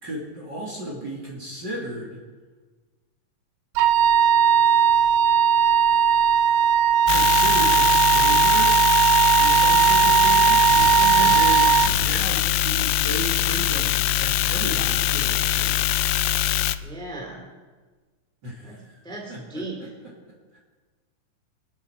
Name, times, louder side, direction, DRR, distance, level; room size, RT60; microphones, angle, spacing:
voice 1, 0.0-2.2 7.1-8.9 9.4-10.7 11.2-16.0 18.4-19.0 19.3-19.6, right 1 dB, 35° right, -3 dB, 2.9 m, -34 dB
Wind instrument woodwind instrument, 3.8-11.9, right 8 dB, 80° right, 2.1 m, -18 dB
sound 1, 7.1-16.8, left 15 dB, 85° left, 2.3 m, -23 dB
sound 2, 10.7-12.1, left 1 dB, 40° left, 2.4 m, -34 dB
voice 2, 11.0-11.3 16.8-17.4 18.6-18.8 19.0-19.8, right 4 dB, ahead, 0 dB, 2.5 m, -34 dB
24.5 x 8.2 x 5.9 m, 1.4 s
omnidirectional pair, 3.9 m